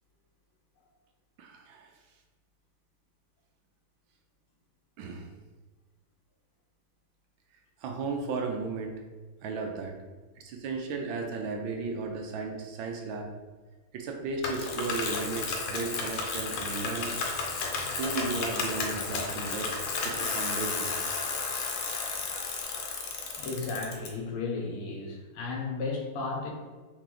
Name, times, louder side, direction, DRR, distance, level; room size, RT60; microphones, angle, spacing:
voice 1, 1.4-1.9 5.0-5.3 7.8-9.0 9.4-9.9 10.4-13.3 13.9-17.1 18.0-19.7 20.0-21.0, right 4 dB, 75° right, 2 dB, 1.3 m, -35 dB
Bicycle, 14.4-24.1, left 4 dB, 70° left, 1.3 m, -33 dB
voice 2, 23.3-26.5, left 3 dB, 90° left, 0 dB, 1.8 m, -34 dB
4.6 x 3.0 x 3.8 m, 1.4 s
omnidirectional pair, 2.3 m